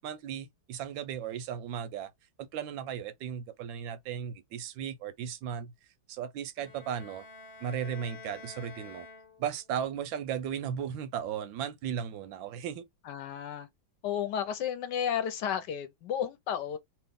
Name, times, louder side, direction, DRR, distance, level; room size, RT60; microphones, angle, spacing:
voice 1, 0.0-2.1 2.4-5.7 6.1-7.2 7.6-9.1 9.4-12.8, right 8 dB, 85° right, 1.3 m, -36 dB
Bowed string instrument, 6.6-9.7, left 3 dB, 45° left, 0.8 m, -49 dB
voice 2, 13.0-13.7 14.0-16.8, left 8 dB, 70° left, 1.2 m, -32 dB
3.0 x 3.0 x 3.5 m
omnidirectional pair, 2.1 m